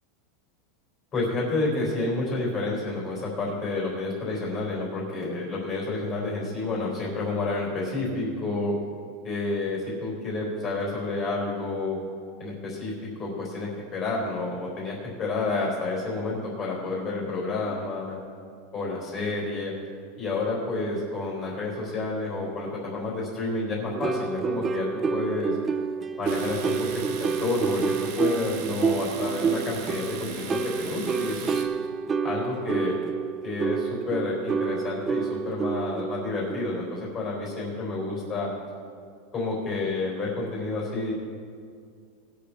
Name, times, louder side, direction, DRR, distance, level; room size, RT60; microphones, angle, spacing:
voice 1, 1.1-8.8 9.2-12.0 12.4-12.9 13.2-18.2 18.7-19.7 20.2-25.6 26.2-27.8 28.2-31.6 32.2-33.0 33.4-38.5 39.3-41.1, left 3 dB, 20° left, -4 dB, 3.8 m, -30 dB
sound 1, 23.9-36.9, right 5 dB, 15° right, 0.4 m, -29 dB
Domestic sounds home sounds, 26.2-31.6, right 5 dB, 50° right, 1.3 m, -38 dB
20.0 x 7.6 x 4.2 m, 2.3 s
supercardioid pair, 165°, 0 cm